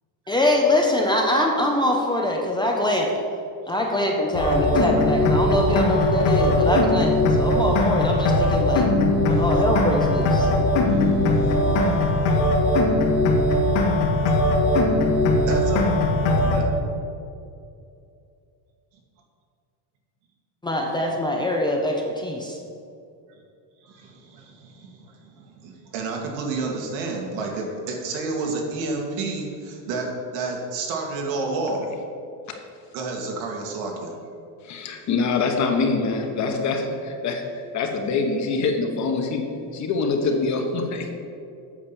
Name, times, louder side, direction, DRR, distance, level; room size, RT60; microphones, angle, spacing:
voice 1, 0.3-3.1 3.7-8.9 9.2-10.5 20.6-22.6, left 1 dB, 10° left, 0 dB, 0.5 m, -23 dB
sound 1, 4.3-16.6, left 1 dB, 70° left, 1.9 m, -20 dB
voice 2, 10.9-12.6 15.4-15.8 16.4-16.6 23.8-31.8 32.9-34.1, right 3 dB, 85° right, 0 dB, 2.2 m, -31 dB
voice 3, 34.6-41.2, left 4 dB, 35° left, 4 dB, 1.0 m, -25 dB
8.6 x 5.9 x 6.9 m, 2.5 s
cardioid pair, 165°, 48 cm